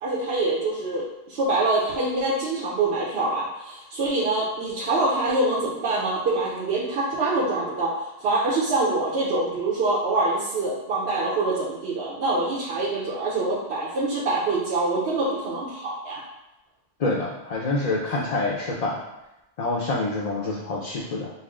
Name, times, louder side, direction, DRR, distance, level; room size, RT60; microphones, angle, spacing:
voice 1, 0.0-16.2, right 2 dB, 90° right, -7 dB, 1.0 m, -25 dB
voice 2, 17.0-19.0 19.6-21.3, left 2 dB, 45° left, -4 dB, 0.6 m, -26 dB
5.6 x 2.0 x 3.6 m, 0.92 s
omnidirectional pair, 1.0 m